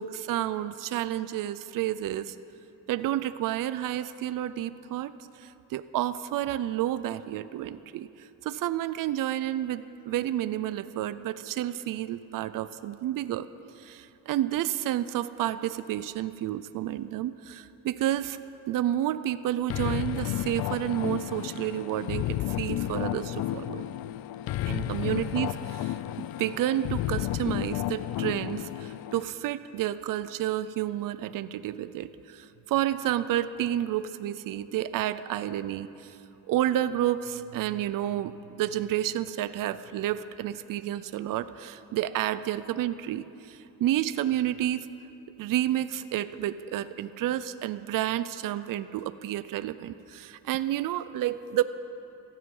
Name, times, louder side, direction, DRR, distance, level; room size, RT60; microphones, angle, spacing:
voice 1, 0.0-2.3 2.9-5.1 5.4-13.5 13.8-18.4 18.7-23.9 24.7-36.2 36.5-44.9 45.4-51.6, right 12 dB, 70° right, 13 dB, 0.5 m, -30 dB
sound 1, 19.7-29.2, left 13 dB, 85° left, 0.5 m, -32 dB
16.0 x 14.0 x 5.5 m, 2.8 s
cardioid pair, 165°, 34 cm